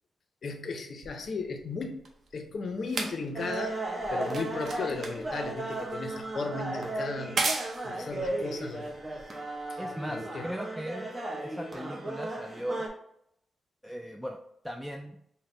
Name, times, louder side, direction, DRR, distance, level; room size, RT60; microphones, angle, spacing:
voice 1, 0.4-2.0 2.3-3.8 4.1-9.4 9.7-10.5, left 4 dB, 60° left, 6 dB, 0.5 m, -36 dB
sound 1, 1.0-9.6 10.5-10.6, right 3 dB, 65° right, 0.6 m, -37 dB
sound 2, 3.3-12.9, right 2 dB, 25° right, 0.7 m, -35 dB
voice 2, 9.8-11.1 11.4-12.8 13.8-14.4 14.6-15.2, equal, ahead, 2 dB, 0.3 m, -38 dB
4.0 x 2.1 x 3.8 m, 0.73 s
cardioid pair, 85°, 0 cm